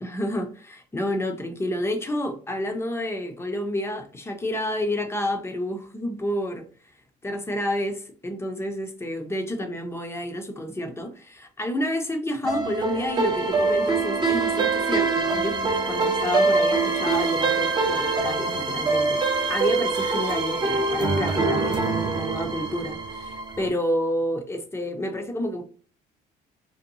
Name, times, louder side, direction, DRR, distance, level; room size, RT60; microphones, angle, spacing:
voice 1, 0.0-6.7 7.2-25.6, left 1 dB, 15° left, 0.6 m, -29 dB
sound 1, 12.4-23.7, right 3 dB, 25° right, 0.6 m, -24 dB
2.6 x 2.2 x 2.6 m
cardioid pair, 110°, 17 cm